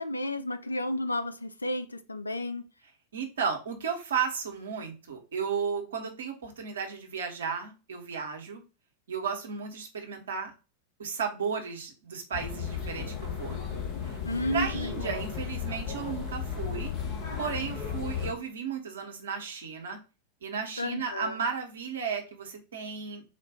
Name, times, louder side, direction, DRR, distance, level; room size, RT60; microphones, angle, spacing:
voice 1, 0.0-2.7 14.2-15.2 20.8-21.4, left 1 dB, 80° left, 0.5 m, -32 dB
voice 2, 3.1-8.6 9.1-10.5 11.0-13.6 14.0-14.2 14.5-16.9 17.4-20.0 20.4-23.2, right 6 dB, 65° right, 1.1 m, -34 dB
sound 1, 12.3-18.3, left 7 dB, 35° left, 1.3 m, -34 dB
4.3 x 2.5 x 4.7 m
figure-of-eight pair, 90°, 0 cm